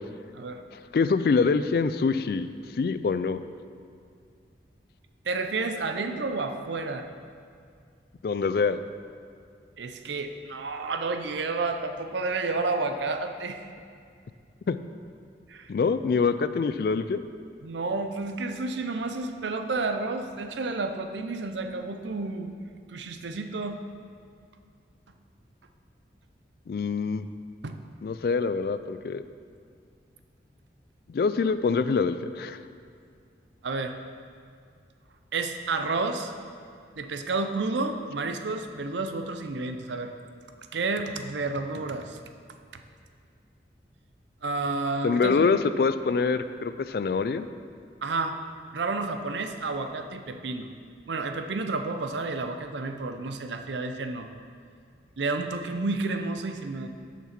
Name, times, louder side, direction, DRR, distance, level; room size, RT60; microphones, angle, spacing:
voice 1, 0.9-2.5 2.8-3.4 8.2-8.8 14.7-14.8 15.7-17.2 26.7-27.3 28.0-29.2 31.1-32.6 45.0-47.5, left 4 dB, 55° left, 12 dB, 0.3 m, -25 dB
voice 2, 5.2-7.1 9.8-13.7 15.5-15.7 17.6-22.5 22.9-23.8 27.6-27.8 33.6-34.0 35.3-36.3 37.0-40.1 40.7-42.2 44.4-45.5 48.0-48.4 48.7-50.7 51.1-54.3 55.2-56.9, right 3 dB, 85° right, 7 dB, 0.6 m, -30 dB
7.0 x 6.1 x 5.9 m, 2.3 s
head